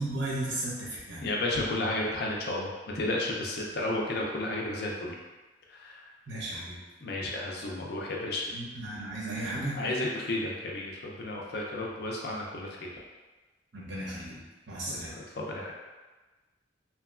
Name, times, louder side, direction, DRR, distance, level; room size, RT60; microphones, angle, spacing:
voice 1, 0.0-1.3 6.3-6.8 8.5-9.8 13.7-15.1, right 1 dB, 70° right, -6 dB, 0.8 m, -35 dB
voice 2, 1.2-5.1 5.8-5.9 7.0-8.5 9.8-12.9 14.9-15.7, left 2 dB, 55° left, -2 dB, 0.4 m, -32 dB
2.9 x 2.2 x 2.3 m, 1.2 s
head